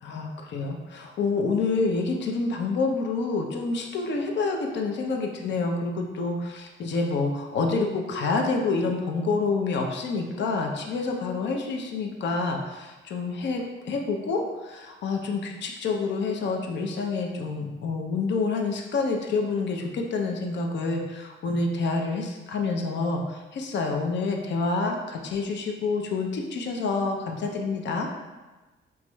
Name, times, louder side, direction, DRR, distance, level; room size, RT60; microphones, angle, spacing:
voice 1, 0.0-28.1, left 3 dB, 65° left, 2 dB, 0.6 m, -28 dB
4.7 x 3.0 x 2.3 m, 1.2 s
cardioid pair, 90°, 20 cm